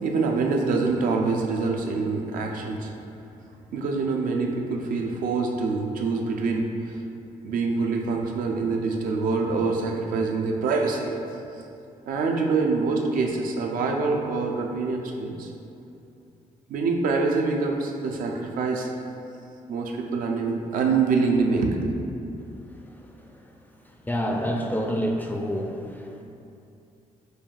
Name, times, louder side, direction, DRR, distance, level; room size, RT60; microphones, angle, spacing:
voice 1, 0.0-2.9 3.7-7.0 7.4-11.1 12.1-15.5 16.7-18.9 19.7-21.9, right 4 dB, 70° right, 1 dB, 0.4 m, -25 dB
voice 2, 23.0-23.3 24.0-26.2, equal, 10° left, 1 dB, 0.3 m, -28 dB
5.4 x 2.3 x 2.4 m, 2.6 s
cardioid pair, 80°, 15 cm